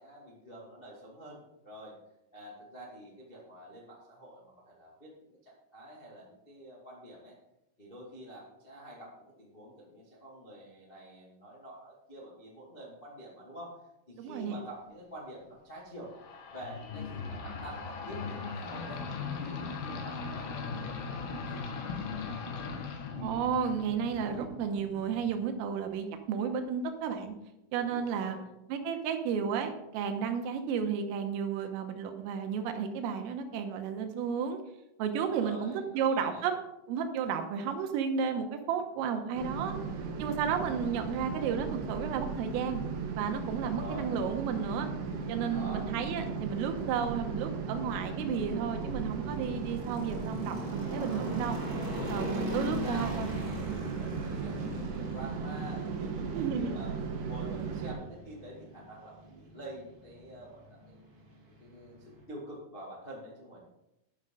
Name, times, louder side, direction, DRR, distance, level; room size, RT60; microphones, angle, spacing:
voice 1, 0.0-1.9 2.3-7.3 7.8-13.8 14.1-16.1 16.5-19.0 19.4-22.3 27.9-28.5 35.1-36.5 43.6-44.1 45.5-45.9 50.8-51.3 52.0-53.2 53.6-57.0 57.3-61.0 61.6-63.6, right 1 dB, 85° left, -4 dB, 0.5 m, -47 dB
voice 2, 14.2-14.6 23.2-27.3 27.7-28.4 28.7-34.6 35.0-36.6 36.9-39.7 40.2-42.8 43.2-44.9 45.3-51.6 52.1-53.3 53.7-53.9 56.3-56.8, right 7 dB, 85° right, 7 dB, 3.6 m, -32 dB
sound 1, 16.1-25.4, left 4 dB, 60° left, 2.9 m, -39 dB
sound 2, 39.3-57.9, right 5 dB, 70° right, 3.2 m, -36 dB
sound 3, 43.0-62.2, left 1 dB, 35° right, 2.3 m, -43 dB
11.0 x 10.5 x 3.9 m, 0.89 s
omnidirectional pair, 5.9 m